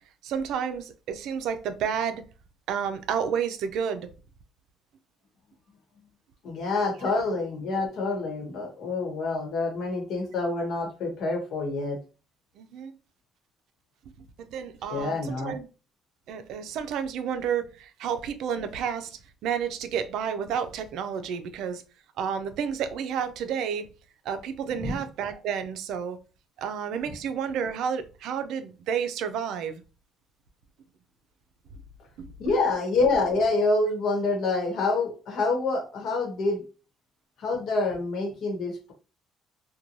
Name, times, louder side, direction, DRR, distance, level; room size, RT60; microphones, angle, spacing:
voice 1, 0.2-2.2 2.7-4.1 12.6-12.9 14.4-15.7 16.3-21.8 22.2-23.8 24.2-26.2 26.6-29.8 32.2-32.3, right 7 dB, 75° right, 0.4 m, -30 dB
voice 2, 6.4-12.0 14.9-15.6 24.8-25.0 32.4-36.6 37.4-38.9, left 3 dB, 65° left, 1.0 m, -27 dB
2.5 x 2.2 x 2.9 m
cardioid pair, 105°, 0 cm